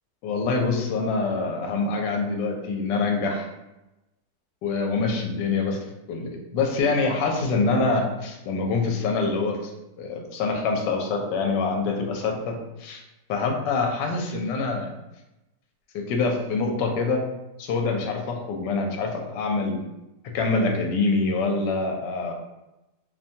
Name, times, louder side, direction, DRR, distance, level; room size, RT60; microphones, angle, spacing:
voice 1, 0.2-3.5 4.6-5.8 6.1-9.7 10.0-13.0 13.3-14.9 15.9-17.2 17.6-19.8 20.3-22.3, left 3 dB, 85° left, 2 dB, 1.2 m, -25 dB
2.9 x 2.2 x 2.6 m, 0.97 s
omnidirectional pair, 1.9 m